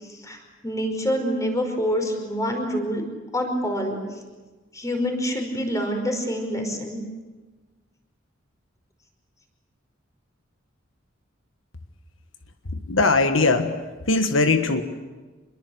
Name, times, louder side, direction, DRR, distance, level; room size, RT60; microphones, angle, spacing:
voice 1, 0.6-3.0 3.3-4.0 4.7-7.0, equal, 15° left, 4 dB, 5.2 m, -26 dB
voice 2, 12.7-13.8 14.1-14.8, left 3 dB, 80° left, 7 dB, 1.5 m, -20 dB
27.5 x 22.0 x 8.1 m, 1.3 s
head